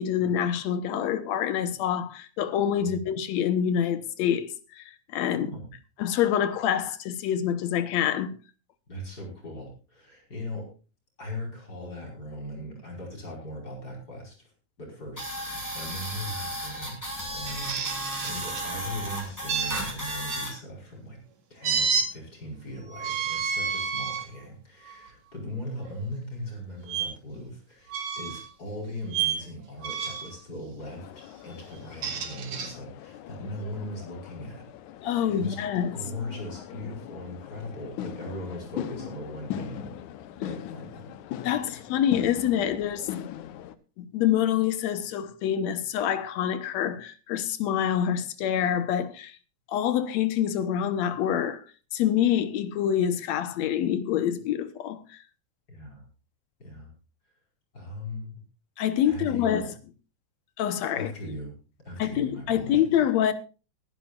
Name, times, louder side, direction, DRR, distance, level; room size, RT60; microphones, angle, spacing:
voice 1, 0.0-4.8 5.1-5.5 6.0-8.3 35.0-36.0 41.4-43.1 44.0-49.4 49.7-51.6 51.9-55.2 58.8-59.7 60.6-61.1 62.0-63.3, left 10 dB, 70° left, 2.2 m, -26 dB
voice 2, 5.3-5.7 8.9-10.7 11.2-14.5 14.8-17.0 17.3-21.2 21.5-34.7 35.0-35.6 35.9-40.1 40.4-41.1 55.7-56.1 56.6-56.9 57.7-58.4 59.0-59.7 60.9-61.6 61.8-62.8, left 1 dB, 30° left, 5.4 m, -39 dB
sound 1, 15.2-20.5, equal, 5° left, 4.7 m, -34 dB
sound 2, 17.5-18.7 19.5-20.4 21.6-22.1 22.9-24.3 24.9-25.1 26.9-27.1 27.9-28.5 29.1-29.4 29.8-30.3 31.8-32.7, right 6 dB, 65° right, 3.2 m, -30 dB
sound 3, 30.8-43.7, left 10 dB, 85° left, 2.3 m, -40 dB
22.5 x 11.0 x 2.5 m
omnidirectional pair, 3.4 m